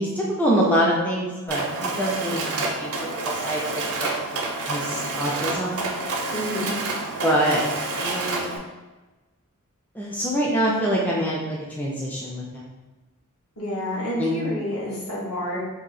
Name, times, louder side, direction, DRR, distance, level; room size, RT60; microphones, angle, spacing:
voice 1, 0.0-2.9 3.2-4.2 4.7-5.8 7.2-7.6 8.0-8.5 9.9-12.6 14.2-14.4, equal, 5° left, -4 dB, 0.4 m, -25 dB
Mechanisms, 1.5-8.6, right 3 dB, 75° right, 0.6 m, -28 dB
voice 2, 6.3-6.8 13.6-15.6, equal, 65° left, -5 dB, 1.1 m, -29 dB
2.8 x 2.6 x 4.0 m, 1.2 s
head